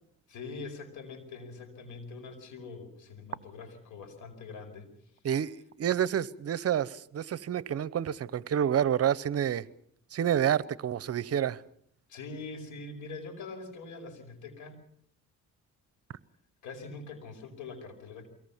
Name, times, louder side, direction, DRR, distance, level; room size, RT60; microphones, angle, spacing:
voice 1, 0.3-4.9 12.1-14.8 16.6-18.3, left 4 dB, 80° left, 5.1 m, -43 dB
voice 2, 5.2-9.6 10.1-11.6, right 9 dB, 55° right, 0.8 m, -28 dB
23.5 x 18.0 x 7.2 m
cardioid pair, 90°, 30 cm